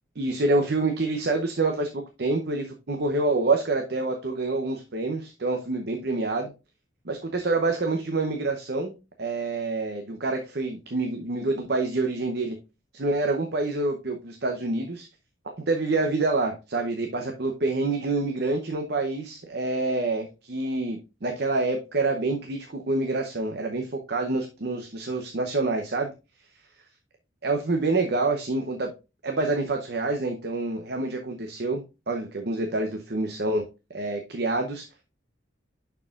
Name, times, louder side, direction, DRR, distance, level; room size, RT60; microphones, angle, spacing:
voice 1, 0.2-1.9 2.2-6.5 7.0-12.6 12.9-15.1 15.7-26.1 27.4-28.9 29.2-33.6 33.9-34.8, right 2 dB, 55° right, 3 dB, 0.8 m, -27 dB
11.0 x 4.6 x 2.4 m, 0.28 s
head